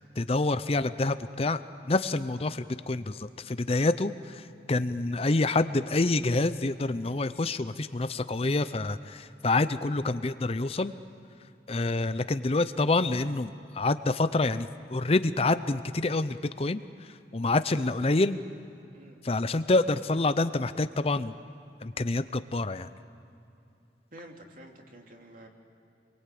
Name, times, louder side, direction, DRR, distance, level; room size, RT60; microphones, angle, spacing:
voice 1, 0.0-1.6 1.9-10.9 11.7-18.4 19.2-21.3 21.8-22.9, left 2 dB, 35° left, 12 dB, 0.6 m, -27 dB
voice 2, 24.1-25.5, right 1 dB, 50° right, 1 dB, 3.2 m, -49 dB
28.0 x 23.0 x 8.5 m, 2.7 s
head